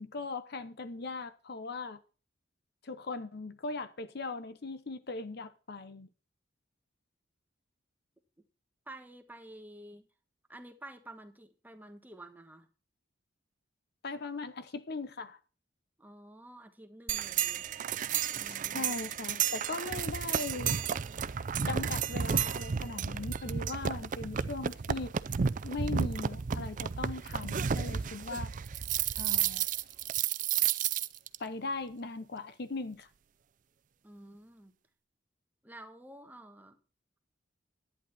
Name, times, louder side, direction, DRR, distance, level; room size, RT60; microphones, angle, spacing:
voice 1, 0.0-2.0 2.8-6.1 14.0-15.4 18.5-20.8 21.7-25.1 25.6-28.5 29.2-29.6 31.4-33.1, left 3 dB, 55° left, 0.8 m, -39 dB
voice 2, 8.9-10.1 10.5-12.7 16.0-17.7 18.4-19.1 34.0-34.7 35.6-36.8, right 1 dB, 10° right, 1.3 m, -50 dB
sound 1, 17.1-31.4, right 8 dB, 45° right, 0.4 m, -32 dB
11.0 x 9.6 x 4.2 m
head